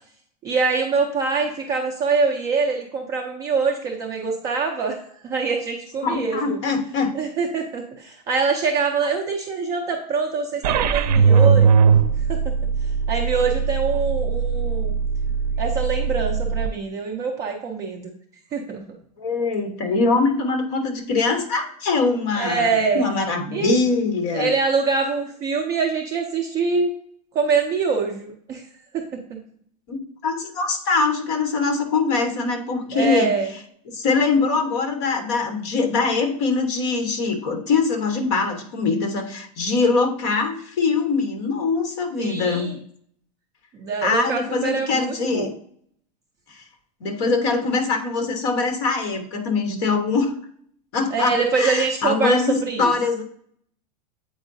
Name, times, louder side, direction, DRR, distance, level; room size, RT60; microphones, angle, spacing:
voice 1, 0.4-6.6 7.1-11.8 12.3-12.5 13.1-15.0 15.6-18.1 18.5-18.8 22.3-23.1 23.5-23.8 24.3-26.9 27.3-28.6 28.9-29.0 32.9-33.5 42.2-42.8 43.7-45.5 51.1-52.9, right 5 dB, 15° right, 1 dB, 0.4 m, -24 dB
voice 2, 6.0-7.1 19.2-24.5 29.9-30.0 30.2-33.3 33.9-42.7 44.0-45.5 46.5-46.6 47.0-50.3 50.9-53.2, left 4 dB, 45° left, 5 dB, 1.1 m, -23 dB
sound 1, 10.6-16.7, right 6 dB, 75° right, 0.6 m, -20 dB
8.0 x 4.6 x 2.6 m, 0.62 s
supercardioid pair, 180°, 21 cm